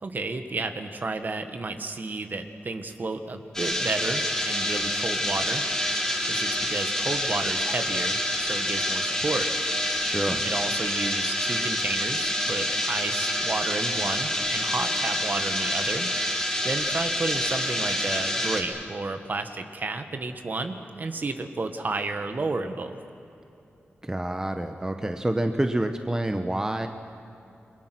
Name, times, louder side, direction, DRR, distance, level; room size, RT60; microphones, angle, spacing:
voice 1, 0.0-5.6 6.3-9.5 10.3-16.1 16.6-23.0, right 3 dB, 45° right, 7 dB, 1.6 m, -32 dB
sound 1, 3.5-18.6, left 1 dB, 10° left, 3.9 m, -27 dB
voice 2, 10.0-10.4 24.0-26.9, right 1 dB, 15° right, 6 dB, 1.1 m, -27 dB
29.0 x 22.5 x 6.1 m, 2.8 s
wide cardioid pair, 110°, 4 cm